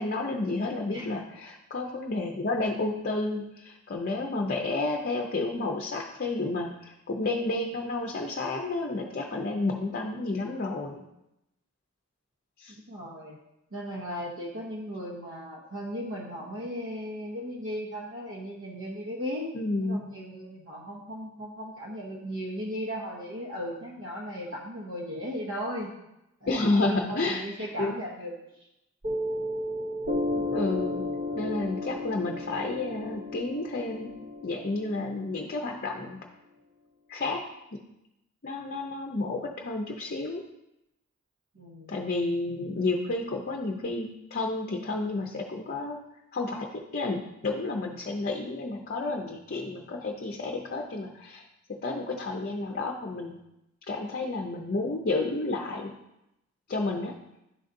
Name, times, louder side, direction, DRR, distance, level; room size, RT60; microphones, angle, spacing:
voice 1, 0.0-11.0 12.6-12.7 19.5-20.0 26.5-28.0 30.5-31.0 31.3-34.2 34.4-36.2 37.1-37.8 38.4-40.4 41.9-46.0 46.3-51.4 51.7-53.4 53.9-55.9 56.7-57.2, left 2 dB, 45° left, 0 dB, 0.6 m, -31 dB
voice 2, 12.7-13.4 13.7-19.6 19.9-25.9 26.4-28.3 41.5-42.0, equal, 65° right, -4 dB, 1.0 m, -37 dB
Piano, 29.0-36.1, left 1 dB, 40° right, 0.6 m, -33 dB
11.0 x 3.9 x 2.6 m, 0.88 s
head